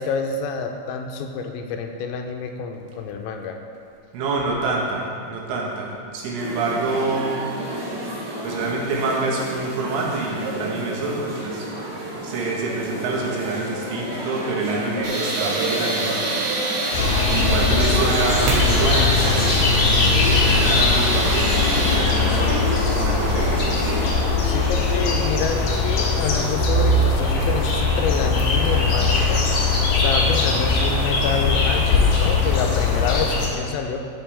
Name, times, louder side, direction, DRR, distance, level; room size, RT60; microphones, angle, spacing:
voice 1, 0.0-3.6 24.4-29.5 30.0-34.0, left 5 dB, 85° left, 4 dB, 3.4 m, -27 dB
voice 2, 4.1-7.5 8.4-11.7 12.2-16.3 17.3-19.7 20.2-22.7 23.0-23.8, right 3 dB, 75° right, -3 dB, 3.9 m, -27 dB
sound 1, 6.4-24.1, right 1 dB, 55° right, 2.7 m, -29 dB
Tools, 15.0-21.9, right 1 dB, 40° right, 2.3 m, -26 dB
sound 2, 16.9-33.5, left 3 dB, 65° left, 2.4 m, -20 dB
14.0 x 7.8 x 3.4 m, 2.3 s
omnidirectional pair, 5.9 m